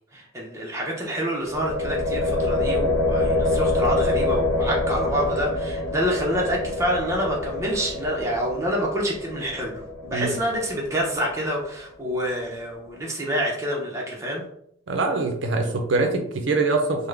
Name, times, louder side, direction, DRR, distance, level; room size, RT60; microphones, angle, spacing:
voice 1, 0.1-9.7 10.0-14.4, equal, 15° right, -2 dB, 0.6 m, -27 dB
sound 1, 1.4-11.3, left 2 dB, 90° left, 0.6 m, -26 dB
voice 2, 14.9-17.1, right 3 dB, 65° right, 4 dB, 0.5 m, -23 dB
3.5 x 2.0 x 3.2 m, 0.71 s
head